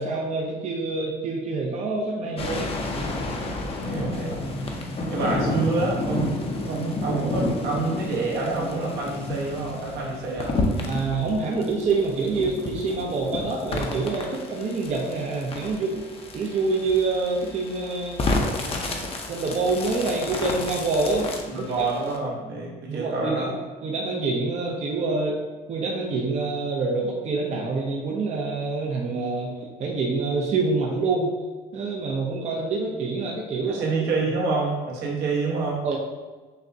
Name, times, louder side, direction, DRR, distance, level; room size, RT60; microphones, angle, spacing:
voice 1, 0.0-2.8 10.9-16.0 16.3-18.2 19.3-21.9 22.9-23.5 23.8-25.4 25.7-29.5 29.8-31.3 31.7-33.9 35.8-36.0, right 3 dB, 40° right, -2 dB, 0.6 m, -26 dB
sound 1, 2.4-22.2, left 2 dB, 35° left, 0.6 m, -30 dB
voice 2, 3.8-4.6 5.1-6.4 6.7-10.6 19.0-19.1 21.5-23.5 33.7-35.8, right 3 dB, 75° right, -3 dB, 1.1 m, -27 dB
6.2 x 2.1 x 2.7 m, 1.3 s
cardioid pair, 110°, 17 cm